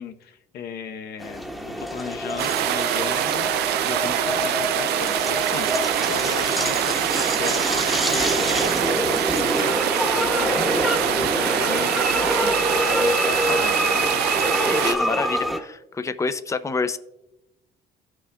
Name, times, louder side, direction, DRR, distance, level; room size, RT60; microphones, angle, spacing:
voice 1, 0.0-1.4 1.8-14.2, left 7 dB, 70° left, 6 dB, 0.9 m, -36 dB
sound 1, 1.2-15.6, equal, ahead, 1.1 m, -25 dB
sound 2, 2.4-14.9, right 12 dB, 75° right, 0.5 m, -24 dB
voice 2, 14.7-17.0, left 4 dB, 20° left, 11 dB, 0.5 m, -27 dB
16.5 x 6.2 x 2.3 m, 0.91 s
cardioid pair, 110°, 17 cm